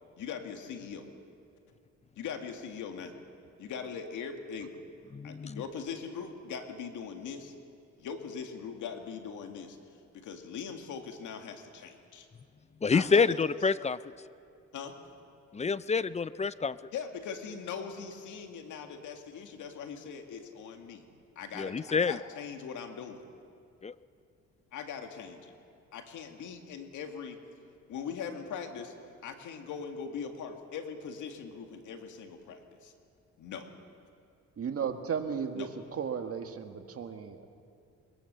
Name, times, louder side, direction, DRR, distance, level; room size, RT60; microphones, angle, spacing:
voice 1, 0.2-1.1 2.2-3.1 3.6-4.7 5.2-7.5 8.0-9.8 10.1-12.3 12.9-13.3 14.7-15.0 16.9-21.0 21.4-23.2 24.7-25.5 25.9-27.4 27.9-28.9 29.2-32.9 33.4-33.7 35.6-35.7, left 6 dB, 80° left, 5 dB, 2.1 m, -41 dB
voice 2, 5.1-5.6 12.8-14.0 15.5-16.8 21.6-22.2 23.8-23.9, left 5 dB, 20° left, 17 dB, 0.5 m, -27 dB
voice 3, 34.6-37.5, right 7 dB, 50° right, 6 dB, 1.8 m, -35 dB
21.5 x 21.5 x 6.8 m, 2.5 s
cardioid pair, 90°, 30 cm